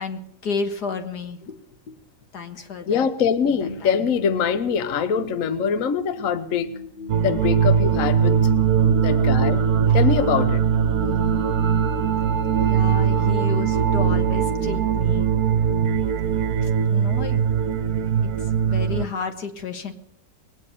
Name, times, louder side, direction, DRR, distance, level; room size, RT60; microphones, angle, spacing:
voice 1, 0.0-1.6 1.9-2.0 2.3-3.1 3.5-4.1 9.9-10.0 11.1-11.3 12.6-15.3 16.6-17.5 18.2-19.9, left 5 dB, 75° left, 6 dB, 2.1 m, -32 dB
voice 2, 2.9-6.7 7.2-8.3 9.0-9.6 9.9-10.6, left 7 dB, 60° left, 11 dB, 1.2 m, -23 dB
sound 1, 3.5-15.6, left 5 dB, 40° left, 1.3 m, -37 dB
sound 2, 7.1-19.1, right 7 dB, 70° right, 1.2 m, -20 dB
21.0 x 9.3 x 6.6 m, 0.76 s
omnidirectional pair, 1.7 m